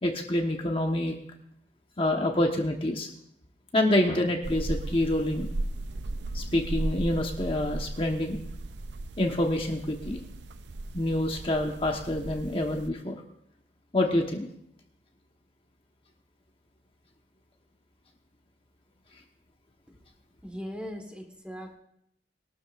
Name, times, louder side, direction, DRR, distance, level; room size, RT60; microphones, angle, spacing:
voice 1, 0.0-1.2 2.0-3.1 3.7-5.5 6.3-8.4 9.2-10.2 10.9-13.1 13.9-14.5, left 1 dB, 30° left, 2 dB, 1.2 m, -27 dB
sound 1, 4.4-12.9, right 2 dB, 75° right, 0.6 m, -36 dB
voice 2, 20.4-21.8, equal, 5° right, 3 dB, 1.5 m, -39 dB
21.5 x 12.5 x 2.5 m, 0.73 s
head